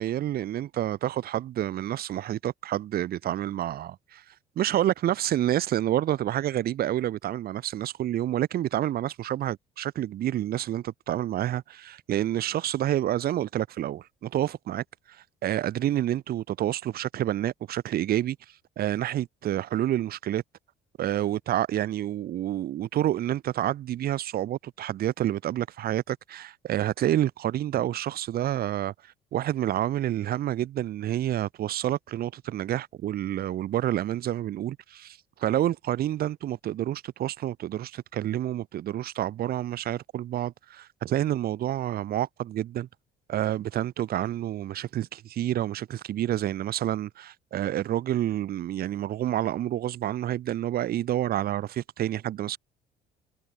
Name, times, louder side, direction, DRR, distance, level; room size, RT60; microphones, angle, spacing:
voice 1, 0.0-20.4 21.0-42.9 43.3-52.6, right 12 dB, 65° right, 4.2 m, -29 dB
cardioid pair, 110°, 17 cm